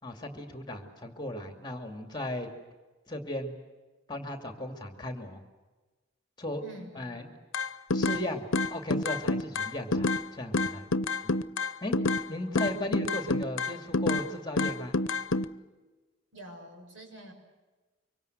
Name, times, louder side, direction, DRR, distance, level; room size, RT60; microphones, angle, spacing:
voice 1, 0.0-2.5 3.1-3.5 4.1-5.4 6.4-6.6 6.9-7.3 7.9-10.9 11.8-14.9, left 1 dB, 20° left, 5 dB, 2.5 m, -36 dB
voice 2, 6.6-7.3 12.4-12.9 16.3-17.3, right 1 dB, 75° right, 3 dB, 6.9 m, -48 dB
sound 1, 7.5-8.2 8.5-10.2 10.5-12.2 12.5-14.3 14.6-15.4, left 3 dB, 90° left, 0.8 m, -27 dB
25.0 x 24.0 x 8.0 m, 1.2 s
head